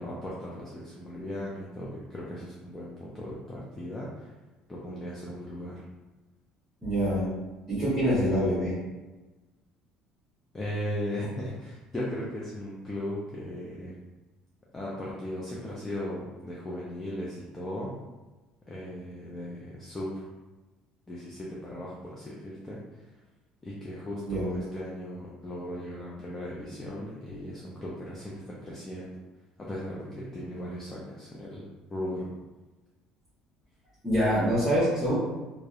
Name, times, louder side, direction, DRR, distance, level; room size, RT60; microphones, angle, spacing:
voice 1, 0.0-4.3 4.7-5.8 10.5-14.0 14.7-17.9 18.7-20.3 21.1-22.8 23.6-29.1 29.6-31.7 31.9-32.3, left 1 dB, 15° left, -5 dB, 0.4 m, -37 dB
voice 2, 6.8-7.3 7.7-8.7 24.2-24.6 34.0-35.1, equal, 20° right, -11 dB, 0.9 m, -25 dB
2.7 x 2.0 x 2.3 m, 1.2 s
cardioid pair, 140°, 2 cm